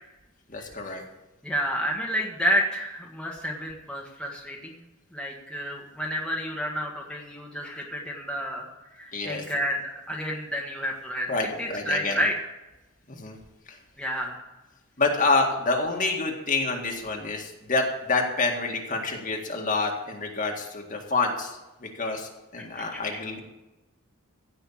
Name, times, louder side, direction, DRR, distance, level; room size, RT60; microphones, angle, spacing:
voice 1, 0.5-1.0 9.1-9.4 11.3-12.2 13.1-13.4 15.0-23.4, left 3 dB, 40° left, 1 dB, 1.9 m, -27 dB
voice 2, 1.4-4.8 5.1-8.6 8.9-11.3 11.6-12.4 14.0-14.4 22.6-23.2, equal, 5° left, -2 dB, 1.5 m, -30 dB
16.0 x 5.7 x 8.6 m, 1.0 s
head